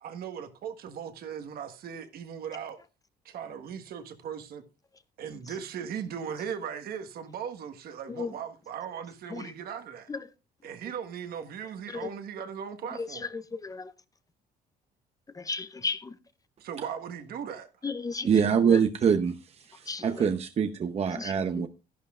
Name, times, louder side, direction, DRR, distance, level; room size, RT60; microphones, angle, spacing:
voice 1, 0.0-2.8 3.2-4.6 5.2-10.1 10.6-13.3 16.6-17.7, right 8 dB, 65° right, 1.5 m, -38 dB
voice 2, 13.0-13.9 15.4-16.1 17.8-18.3 18.6-18.8 19.9-20.2 21.2-21.7, left 4 dB, 20° left, 0.7 m, -35 dB
voice 3, 18.2-19.4 19.7-21.7, right 7 dB, 40° right, 0.8 m, -24 dB
12.5 x 11.0 x 2.4 m
cardioid pair, 110°, 17 cm